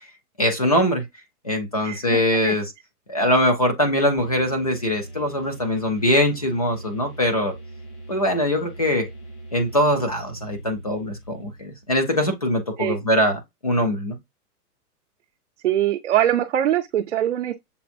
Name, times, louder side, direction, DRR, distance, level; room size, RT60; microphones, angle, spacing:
voice 1, 0.4-1.0 1.4-2.7 3.1-7.5 8.1-9.1 9.5-14.2, left 1 dB, 25° left, 0.4 m, -22 dB
voice 2, 1.8-2.6 12.8-13.0 15.6-17.6, right 11 dB, 50° right, 0.5 m, -23 dB
sound 1, 4.2-11.9, right 2 dB, 70° left, 3.1 m, -41 dB
6.8 x 2.5 x 2.5 m
hypercardioid pair, 175°, 47 cm